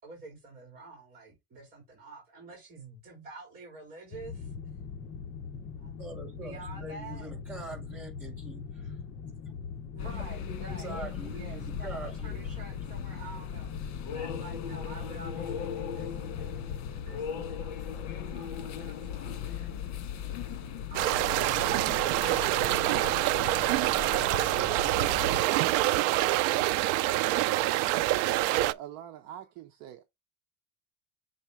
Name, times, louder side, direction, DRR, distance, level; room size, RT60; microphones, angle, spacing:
voice 1, 0.0-4.5 5.8-5.9 6.3-7.5 9.9-19.8 20.2-20.6, right 3 dB, 30° right, 3.6 m, -49 dB
sound 1, 4.1-17.0, left 6 dB, 40° left, 1.0 m, -42 dB
voice 2, 6.0-8.6 10.8-12.5, right 3 dB, 5° right, 5.1 m, -43 dB
sound 2, 10.0-25.4, left 8 dB, 65° left, 1.5 m, -38 dB
sound 3, 20.9-28.7, right 16 dB, 70° right, 0.5 m, -26 dB
voice 3, 28.5-30.0, right 11 dB, 55° right, 1.0 m, -44 dB
7.0 x 4.1 x 4.8 m
cardioid pair, 170°, 30 cm